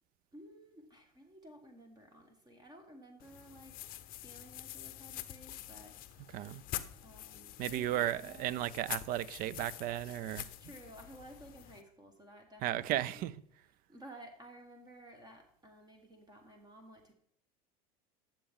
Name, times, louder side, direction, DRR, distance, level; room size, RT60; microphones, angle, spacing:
voice 1, 0.3-3.7 4.1-6.0 7.0-8.7 10.6-13.3 13.9-17.1, right 1 dB, 20° right, 1.4 m, -54 dB
sound 1, 3.2-11.8, left 13 dB, 50° left, 0.6 m, -46 dB
voice 2, 6.3-6.6 7.6-10.5 12.6-13.3, right 13 dB, 50° right, 0.4 m, -34 dB
9.8 x 7.2 x 3.6 m
hypercardioid pair, 95°, 19 cm